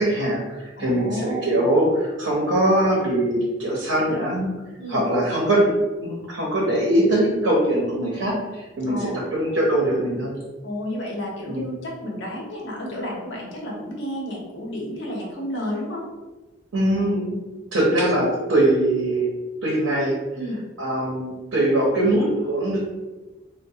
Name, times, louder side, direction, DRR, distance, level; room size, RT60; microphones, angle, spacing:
voice 1, 0.0-4.5 4.9-10.4 11.5-11.7 16.7-17.4 17.7-19.3 19.6-20.2 20.8-22.8, right 1 dB, 75° right, -3 dB, 0.7 m, -22 dB
voice 2, 0.8-1.6 4.8-5.0 8.9-9.2 10.6-16.1 20.3-20.6, equal, 70° left, -3 dB, 0.8 m, -31 dB
3.0 x 2.1 x 2.7 m, 1.1 s
head